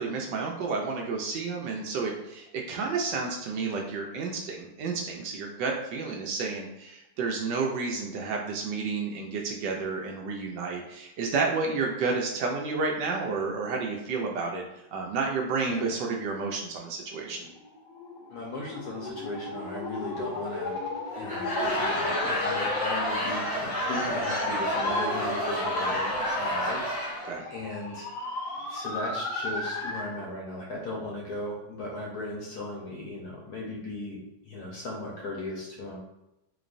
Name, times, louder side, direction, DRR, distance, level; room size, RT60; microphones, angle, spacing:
voice 1, 0.0-14.6 14.9-17.5 27.2-27.4, right 4 dB, 75° right, 0 dB, 1.1 m, -31 dB
sound 1, 17.5-30.2, left 3 dB, 80° left, 1.5 m, -34 dB
voice 2, 18.3-20.8 21.2-28.1 28.7-34.2 34.4-36.0, left 1 dB, 60° left, -3 dB, 1.2 m, -37 dB
Laughter / Crowd, 21.1-27.3, equal, 35° left, 0.5 m, -30 dB
3.8 x 3.0 x 2.5 m, 0.92 s
omnidirectional pair, 2.2 m